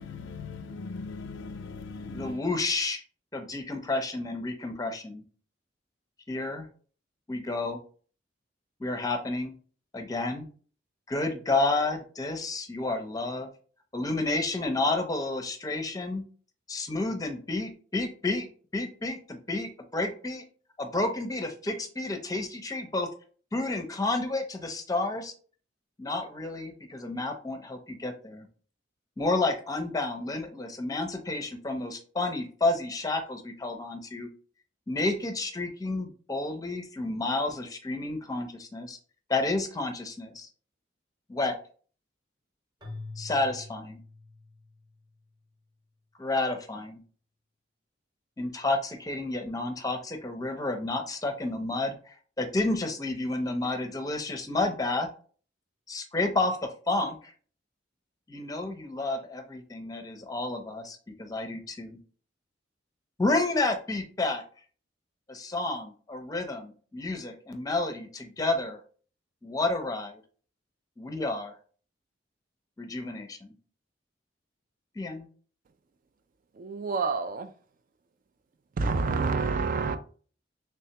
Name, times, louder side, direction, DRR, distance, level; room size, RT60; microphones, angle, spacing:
voice 1, 0.0-2.4, left 4 dB, 75° left, 0.4 m, -39 dB
voice 2, 2.1-3.0 3.3-5.2 6.3-6.7 7.3-7.8 8.8-9.5 9.9-10.5 11.1-13.5 13.9-16.2 16.7-18.5 18.7-20.4 20.8-23.1 23.5-25.3 26.0-28.5 29.2-34.3 34.9-39.0 39.3-40.5 41.3-41.6 43.2-44.0 46.2-47.0 48.4-55.1 55.9-57.3 58.3-62.0 63.2-64.4 65.3-68.8 69.4-70.2 71.0-71.6 72.8-73.5 75.0-75.3, left 2 dB, 20° left, 0.6 m, -30 dB
Keyboard (musical), 42.8-45.1, left 3 dB, 25° right, 0.9 m, -44 dB
voice 3, 76.6-77.5 78.8-80.0, right 4 dB, 45° right, 0.4 m, -28 dB
3.4 x 3.3 x 2.8 m
head